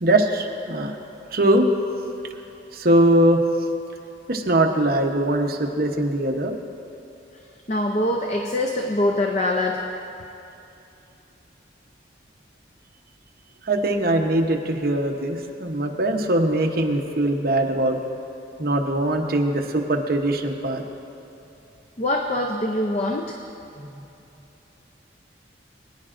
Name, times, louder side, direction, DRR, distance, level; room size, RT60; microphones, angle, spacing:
voice 1, 0.0-0.9 1.3-1.7 2.7-3.4 4.3-6.6 13.6-18.0 18.6-20.8 23.8-23.9, right 1 dB, 55° right, 2 dB, 0.9 m, -21 dB
voice 2, 7.7-9.9 22.0-23.4, left 1 dB, 35° left, 2 dB, 0.5 m, -23 dB
22.5 x 9.9 x 2.5 m, 2.8 s
head